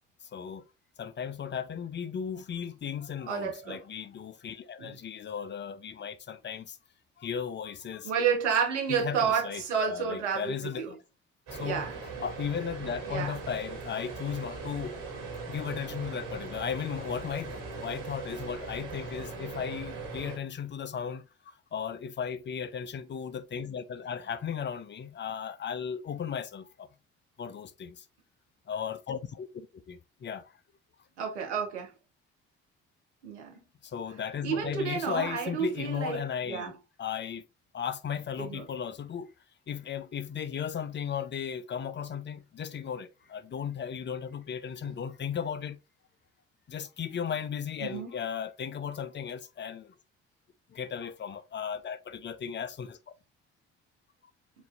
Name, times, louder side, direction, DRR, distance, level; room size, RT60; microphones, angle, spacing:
voice 1, 0.3-0.6 1.0-6.8 7.2-8.1 8.9-11.0 11.5-11.9 12.2-15.0 15.5-26.9 27.4-28.1 28.7-30.5 33.8-37.4 37.7-39.3 39.7-45.8 46.7-49.9 50.7-53.1, left 7 dB, 35° left, 0.5 m, -36 dB
voice 2, 3.3-3.8 4.8-5.0 8.0-10.9 11.6-12.0 13.1-13.4 31.2-31.9 33.2-33.5 34.4-36.7 38.4-38.6 44.8-45.0 47.8-48.1, right 6 dB, 85° right, 0.9 m, -30 dB
sound 1, 11.5-20.4, right 4 dB, 70° right, 1.7 m, -40 dB
6.9 x 2.6 x 2.4 m
hypercardioid pair, 45°, 34 cm